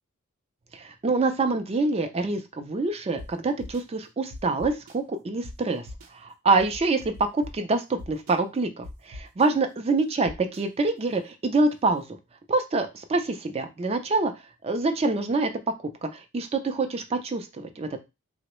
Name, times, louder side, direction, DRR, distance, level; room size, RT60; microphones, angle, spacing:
voice 1, 0.7-5.9 6.1-12.0 12.5-14.3 14.6-15.5 16.0-18.0, right 3 dB, 30° right, 8 dB, 0.4 m, -26 dB
sound 1, 3.2-3.3 3.6-3.8 4.3-4.9 5.4-5.5 5.9-6.1 6.6-7.5 8.0-8.3 8.8-9.5 10.2-10.6, left 1 dB, 70° right, 0.6 m, -40 dB
3.6 x 2.0 x 3.0 m, 0.25 s
head